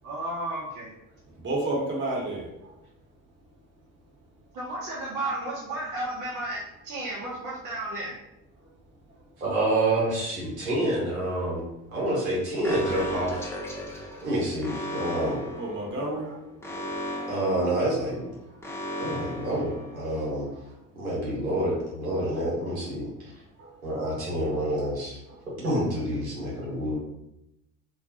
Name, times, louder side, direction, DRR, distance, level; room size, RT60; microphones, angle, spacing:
voice 1, 0.0-0.9 4.5-8.2, right 1 dB, 45° right, -5 dB, 0.7 m, -33 dB
voice 2, 1.4-2.5 14.1-14.2 15.5-16.4 16.7-16.9 17.3-17.4 24.8-24.9, right 2 dB, 30° right, -4 dB, 1.1 m, -30 dB
voice 3, 9.4-11.6 11.9-13.5 14.2-15.4 17.3-18.2 19.0-20.5 21.0-23.1 23.8-25.2 25.6-27.0, right 1 dB, 90° right, -6 dB, 0.8 m, -27 dB
Alarm, 12.6-20.4, equal, 5° left, 0.5 m, -36 dB
2.3 x 2.2 x 2.7 m, 0.88 s
hypercardioid pair, 60°, 41 cm